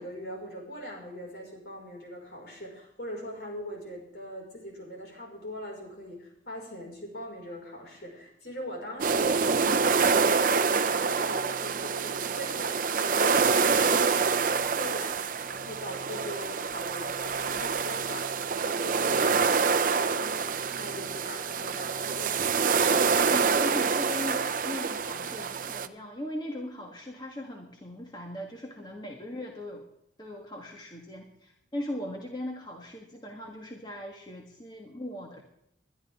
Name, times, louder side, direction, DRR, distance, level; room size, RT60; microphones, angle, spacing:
voice 1, 0.0-22.8, equal, 65° left, 0 dB, 5.4 m, -41 dB
sound 1, 9.0-25.9, right 5 dB, 45° right, 0.6 m, -26 dB
voice 2, 23.3-29.9 30.2-35.4, left 1 dB, 25° left, 0 dB, 1.5 m, -39 dB
22.0 x 11.5 x 3.6 m, 0.79 s
head